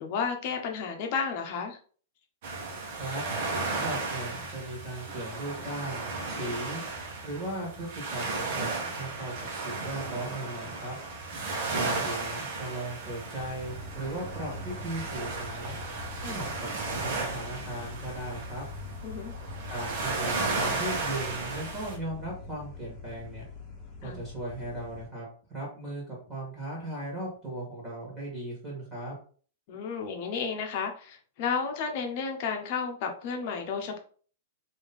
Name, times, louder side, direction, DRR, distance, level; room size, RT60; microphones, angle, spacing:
voice 1, 0.0-1.8 19.0-19.3 24.0-24.2 29.7-34.0, left 5 dB, 45° left, 3 dB, 0.8 m, -32 dB
sound 1, 2.4-22.0, right 3 dB, 50° right, 1.1 m, -34 dB
voice 2, 3.7-6.8 7.2-11.0 11.7-15.7 16.2-18.6 19.7-23.4 24.0-29.1, right 1 dB, 15° right, -5 dB, 1.6 m, -37 dB
sound 2, 13.4-25.0, left 3 dB, 5° left, 1.5 m, -43 dB
3.4 x 2.7 x 3.6 m, 0.43 s
supercardioid pair, 165°, 0 cm